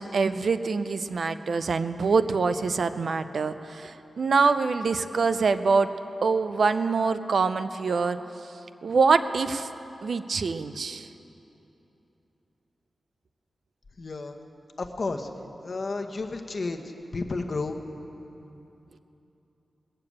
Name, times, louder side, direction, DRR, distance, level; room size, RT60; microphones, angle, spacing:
voice 1, 0.0-5.9 6.2-8.2 8.8-9.7 10.0-11.1, right 4 dB, 70° right, 11 dB, 0.5 m, -25 dB
voice 2, 14.0-14.4 14.8-15.3 15.6-17.8, left 3 dB, 45° left, 4 dB, 1.0 m, -32 dB
20.0 x 6.8 x 8.5 m, 3.0 s
wide cardioid pair, 115°, 0 cm